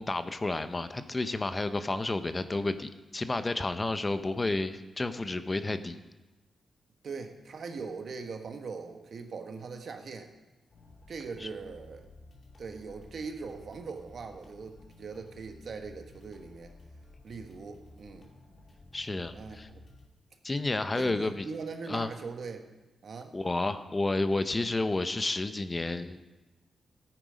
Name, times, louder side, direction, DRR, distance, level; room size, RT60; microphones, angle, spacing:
voice 1, 0.0-6.0 11.4-11.5 18.9-19.7 20.4-21.4 21.9-22.1 23.3-26.2, left 2 dB, 25° left, 11 dB, 0.7 m, -31 dB
voice 2, 7.0-10.3 11.1-12.1 12.6-16.7 17.2-18.3 19.3-19.8 20.9-22.7 23.0-23.3, right 4 dB, 65° right, 5 dB, 1.3 m, -41 dB
sound 1, 10.7-20.1, left 2 dB, 50° left, 2.3 m, -54 dB
14.5 x 9.1 x 5.1 m, 1.1 s
cardioid pair, 90°, 0 cm